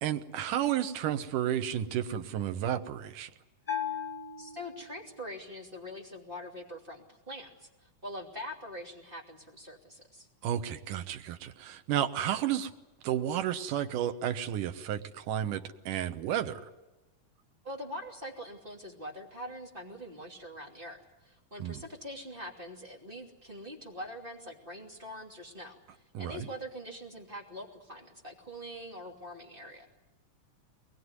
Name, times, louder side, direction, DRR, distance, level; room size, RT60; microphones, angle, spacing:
voice 1, 0.0-3.3 10.4-12.7 13.0-16.6 21.6-21.8 26.1-26.5, right 10 dB, 85° right, 8 dB, 2.6 m, -32 dB
Bell, 3.7-5.3, left 8 dB, 10° left, 2.5 m, -37 dB
voice 2, 4.4-10.3 17.6-29.9, equal, 15° right, -1 dB, 2.6 m, -44 dB
23.0 x 20.5 x 9.6 m, 1.0 s
omnidirectional pair, 3.7 m